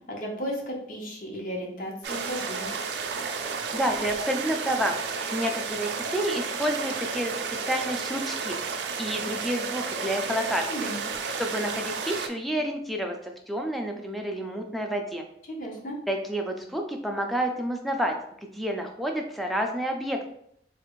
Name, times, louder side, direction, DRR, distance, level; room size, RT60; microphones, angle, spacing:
voice 1, 0.1-2.7 10.6-11.0 15.6-16.0, equal, 50° left, -1 dB, 0.8 m, -34 dB
sound 1, 2.0-12.3, right 5 dB, 75° right, 0.4 m, -32 dB
voice 2, 3.7-8.6 9.0-10.9 11.4-15.2 16.1-18.1 18.4-20.3, equal, ahead, 3 dB, 0.3 m, -29 dB
3.3 x 2.4 x 3.0 m, 0.71 s
head